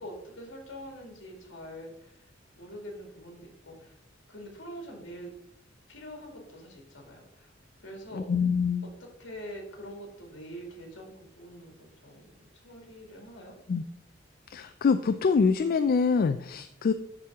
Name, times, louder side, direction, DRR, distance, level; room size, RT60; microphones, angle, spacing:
voice 1, 0.0-2.3 2.6-3.9 4.3-5.3 5.9-7.5 7.8-8.3 9.0-13.5, equal, 70° left, 1 dB, 2.3 m, -44 dB
voice 2, 8.1-8.8 13.7-13.8 14.5-16.9, left 5 dB, 50° left, 9 dB, 0.3 m, -25 dB
11.5 x 4.4 x 3.6 m, 0.76 s
head